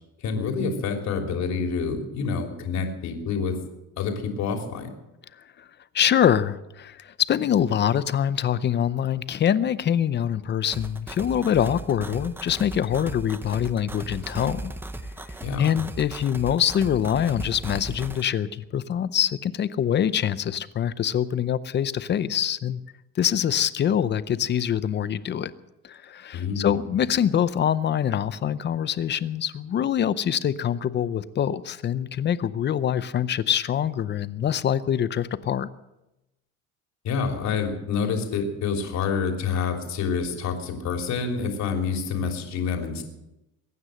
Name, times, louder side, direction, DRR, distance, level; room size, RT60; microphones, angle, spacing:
voice 1, 0.2-3.6 4.0-4.9 15.4-15.7 26.3-26.9 37.0-43.0, left 5 dB, 55° left, 3 dB, 3.3 m, -27 dB
voice 2, 5.9-14.7 15.3-22.8 23.2-25.5 25.8-35.7, left 9 dB, 35° left, 15 dB, 0.6 m, -24 dB
sound 1, 10.7-18.2, right 1 dB, 5° right, 0.7 m, -37 dB
23.0 x 9.6 x 6.5 m, 0.92 s
cardioid pair, 140°, 33 cm